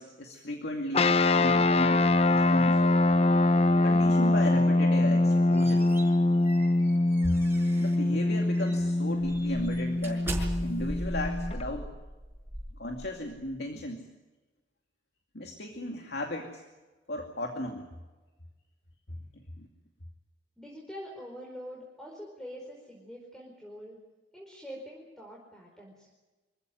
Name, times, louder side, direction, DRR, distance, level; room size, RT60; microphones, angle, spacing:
voice 1, 0.0-2.8 3.8-5.9 7.2-7.3 7.8-11.9 12.8-14.1 15.3-16.6 17.1-17.9 19.1-19.7, left 1 dB, 70° left, 2 dB, 2.4 m, -36 dB
sound 1, 0.9-11.6, left 2 dB, 35° left, 0.7 m, -24 dB
sound 2, 5.1-8.1 8.5-8.8 9.2-13.4, right 1 dB, 15° right, 5.8 m, -39 dB
voice 2, 20.6-24.0 24.3-26.1, equal, 5° left, -2 dB, 4.7 m, -44 dB
26.0 x 15.5 x 9.4 m, 1.2 s
head